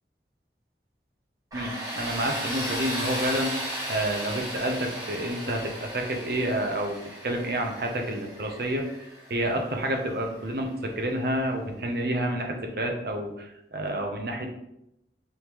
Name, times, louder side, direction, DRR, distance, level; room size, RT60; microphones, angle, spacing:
Tools, 1.5-10.3, equal, 20° right, 1.4 m, -35 dB
voice 1, 1.5-3.6 3.9-7.0 7.2-8.8 9.3-14.5, right 1 dB, 55° right, 3 dB, 0.6 m, -29 dB
3.5 x 3.1 x 2.9 m, 0.83 s
head